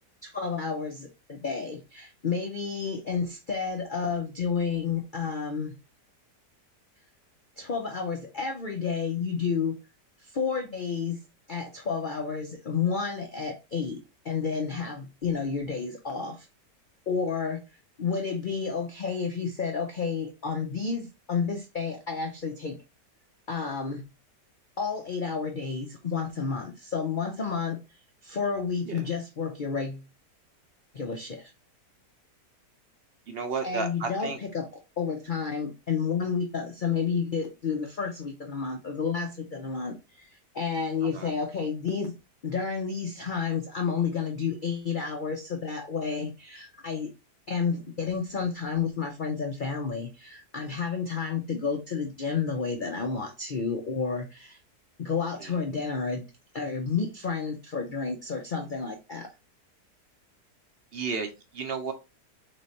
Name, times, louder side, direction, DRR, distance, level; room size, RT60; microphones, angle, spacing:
voice 1, 0.2-5.8 7.6-9.8 10.2-11.2 11.5-16.5 17.1-17.7 18.0-22.8 23.5-24.0 24.8-30.0 30.9-31.5 33.6-34.7 35.0-42.1 42.4-47.1 47.5-54.6 55.0-56.3 56.5-59.3, left 5 dB, 85° left, 3 dB, 0.4 m, -31 dB
voice 2, 33.3-34.4 41.0-41.3 55.4-55.5 60.9-61.9, right 5 dB, 60° right, 6 dB, 0.6 m, -33 dB
3.9 x 3.2 x 4.0 m, 0.27 s
omnidirectional pair, 1.8 m